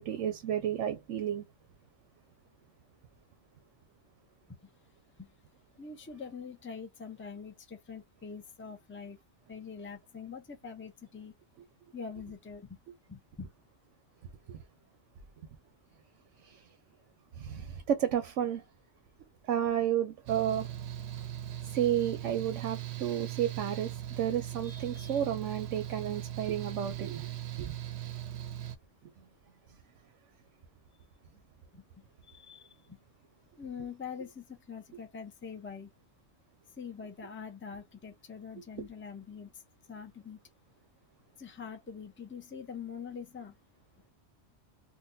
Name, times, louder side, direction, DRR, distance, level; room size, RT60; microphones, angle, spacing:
voice 1, 0.0-1.4 14.5-14.6 16.4-16.7 17.3-18.6 19.4-20.7 21.6-27.7, right 10 dB, 90° right, 1.0 m, -32 dB
voice 2, 5.8-9.2 9.5-11.3 11.9-12.8 13.1-13.5 31.7-33.0 33.6-35.9 36.8-39.6 39.9-40.4 41.4-43.6, left 6 dB, 15° left, 0.5 m, -44 dB
Mechanical fan, 20.3-28.8, right 12 dB, 70° right, 0.8 m, -39 dB
3.8 x 2.2 x 2.6 m
omnidirectional pair, 1.2 m